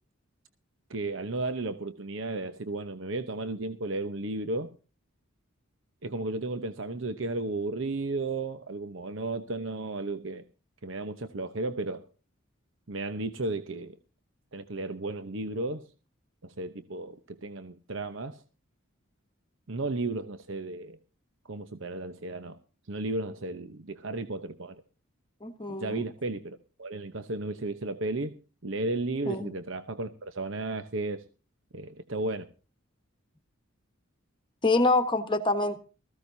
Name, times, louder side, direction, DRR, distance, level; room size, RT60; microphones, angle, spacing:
voice 1, 0.9-4.7 6.0-10.4 10.8-12.0 12.9-13.9 14.5-15.8 16.4-18.4 19.7-21.0 21.5-22.6 22.9-24.8 25.7-28.3 28.6-31.2 31.7-32.5, right 2 dB, 65° right, 9 dB, 1.0 m, -34 dB
voice 2, 25.4-26.0 29.2-29.5 34.6-35.8, left 2 dB, 25° left, 8 dB, 1.3 m, -26 dB
19.5 x 15.0 x 2.8 m, 0.34 s
head